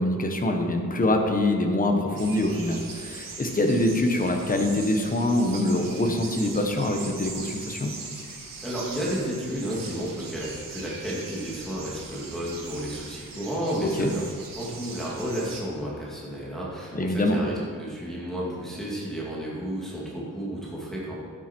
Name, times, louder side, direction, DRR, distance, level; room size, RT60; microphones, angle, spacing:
voice 1, 0.0-7.9 13.8-14.1 16.9-17.4, left 1 dB, 25° left, 3 dB, 1.1 m, -24 dB
sound 1, 2.2-15.6, right 4 dB, 80° right, 1.7 m, -41 dB
voice 2, 8.6-14.2 14.5-21.1, equal, ahead, -7 dB, 2.3 m, -32 dB
12.0 x 8.9 x 4.5 m, 2.1 s
wide cardioid pair, 165°, 33 cm